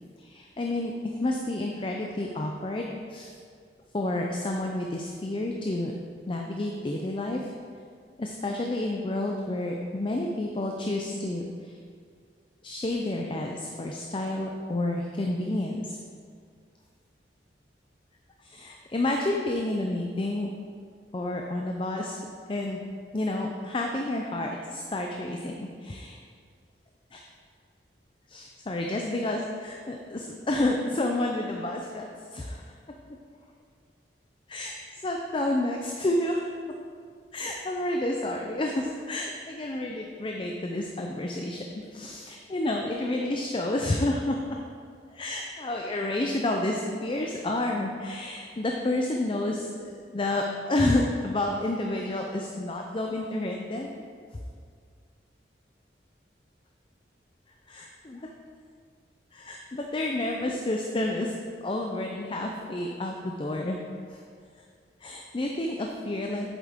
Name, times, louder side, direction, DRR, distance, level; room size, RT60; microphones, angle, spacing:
voice 1, 0.2-3.3 3.9-5.9 6.3-7.5 8.2-11.7 12.6-16.0 18.4-20.5 21.1-22.2 22.5-22.8 23.1-26.2 27.1-27.2 28.3-32.6 34.5-34.7 35.0-36.4 37.3-44.4 45.1-53.9 57.7-58.3 59.3-61.3 61.6-63.8 64.1-64.2 65.0-66.6, left 1 dB, 30° left, 1 dB, 0.5 m, -30 dB
8.1 x 7.4 x 3.6 m, 2.1 s
head